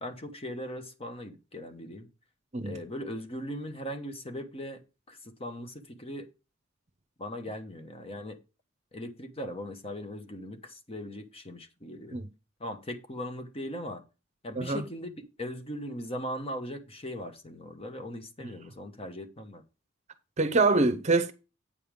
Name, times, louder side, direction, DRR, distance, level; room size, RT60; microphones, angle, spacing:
voice 1, 0.0-2.1 2.6-4.8 5.1-6.3 7.2-8.4 8.9-12.2 12.6-14.0 14.4-19.6, equal, 30° left, 1.1 m, -39 dB
voice 2, 20.4-21.3, right 3 dB, 35° right, 0.8 m, -25 dB
8.6 x 5.5 x 5.2 m
head